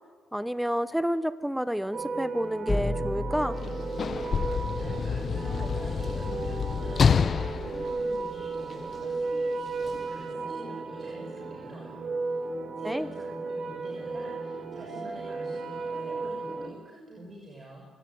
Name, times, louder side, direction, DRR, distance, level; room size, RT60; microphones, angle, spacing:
voice 1, 0.3-3.6 12.8-13.1, equal, 5° right, 14 dB, 1.1 m, -29 dB
sound 1, 1.9-16.7, right 3 dB, 55° right, 4.5 m, -34 dB
Metal hit low big container medium, 2.7-6.5, left 2 dB, 20° left, 2.1 m, -35 dB
Sliding door / Slam, 3.5-8.9 9.8-10.0, left 6 dB, 45° left, 0.7 m, -28 dB
voice 2, 4.7-12.4 12.8-17.9, right 1 dB, 35° right, -1 dB, 6.5 m, -47 dB
24.0 x 17.5 x 9.5 m, 1.5 s
cardioid pair, 90°, 0 cm